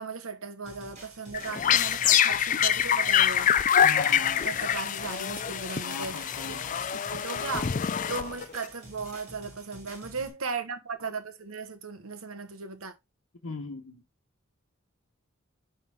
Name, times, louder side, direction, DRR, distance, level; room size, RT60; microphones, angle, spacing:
voice 1, 0.0-3.5 4.4-6.5 7.1-7.8 8.1-12.9, right 4 dB, 90° right, 1.2 m, -37 dB
sound 1, 0.6-10.3, right 1 dB, 35° right, 3.1 m, -49 dB
sound 2, 1.3-8.6, left 9 dB, 35° left, 0.4 m, -25 dB
voice 2, 3.8-5.1 5.8-6.8 13.4-14.0, left 3 dB, 85° left, 1.0 m, -40 dB
9.7 x 3.7 x 3.5 m
head